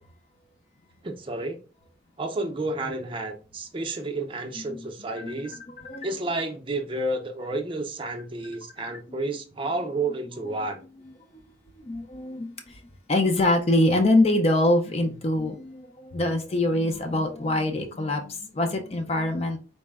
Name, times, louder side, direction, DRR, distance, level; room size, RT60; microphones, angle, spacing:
voice 1, 1.0-1.6 2.2-5.6 6.0-10.8, right 2 dB, 25° right, 0.6 m, -31 dB
voice 2, 4.5-4.9 5.2-6.2 9.2-9.4 10.4-12.8 13.1-19.6, left 1 dB, 35° left, 0.5 m, -25 dB
4.1 x 2.1 x 3.4 m
head